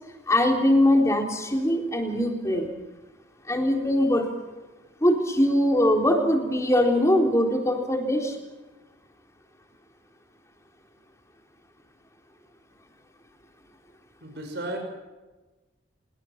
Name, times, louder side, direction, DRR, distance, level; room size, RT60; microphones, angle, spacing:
voice 1, 0.3-2.7 3.5-4.3 5.0-8.4, left 1 dB, 15° left, 2 dB, 3.9 m, -22 dB
voice 2, 14.2-14.8, right 1 dB, 60° right, 2 dB, 5.9 m, -33 dB
26.0 x 22.0 x 6.0 m, 1.2 s
head